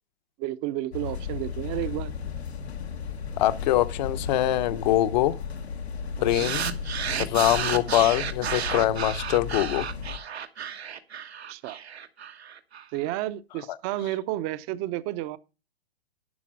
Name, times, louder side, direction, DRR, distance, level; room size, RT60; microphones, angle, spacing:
voice 1, 0.4-2.1 6.2-6.5 11.5-11.8 12.9-15.4, right 15 dB, 30° right, 0.6 m, -31 dB
sound 1, 0.9-10.2, left 6 dB, 90° left, 1.3 m, -35 dB
voice 2, 3.4-5.4 6.2-6.7 7.2-9.9, left 14 dB, 45° left, 0.8 m, -23 dB
sound 2, 6.3-12.8, right 8 dB, 85° right, 1.3 m, -32 dB
11.0 x 5.2 x 6.2 m
hypercardioid pair, 130°, 31 cm